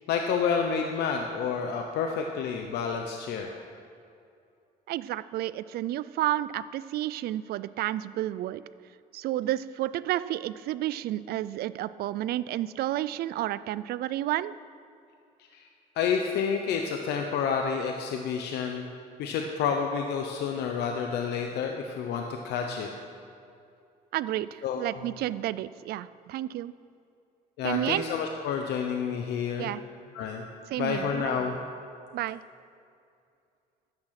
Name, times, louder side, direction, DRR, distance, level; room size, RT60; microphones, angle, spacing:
voice 1, 0.1-3.5 15.5-15.6 16.0-18.8 19.2-22.9 24.6-24.9 27.6-29.7 30.1-30.4 30.8-31.6, left 6 dB, 80° left, 3 dB, 0.9 m, -29 dB
voice 2, 4.9-8.6 9.1-14.5 24.1-26.7 27.6-28.0 29.6-29.8 30.7-31.4 32.1-32.4, right 14 dB, 70° right, 16 dB, 0.4 m, -31 dB
13.0 x 8.9 x 5.9 m, 2.5 s
cardioid pair, 110°, 17 cm